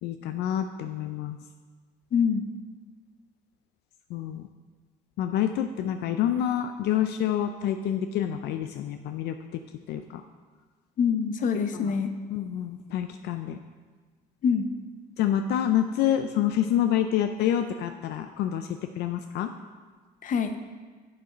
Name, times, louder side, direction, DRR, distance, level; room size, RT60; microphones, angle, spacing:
voice 1, 0.0-1.4 4.1-4.5 5.2-9.4 9.9-10.2 11.7-11.9 12.3-13.6 15.2-18.7 19.0-19.5, left 10 dB, 80° left, 7 dB, 0.4 m, -27 dB
voice 2, 2.1-2.4 11.0-12.1 14.4-14.7 20.2-20.6, left 6 dB, 50° left, 8 dB, 0.8 m, -25 dB
7.4 x 7.1 x 5.0 m, 1.4 s
cardioid pair, 110°, 17 cm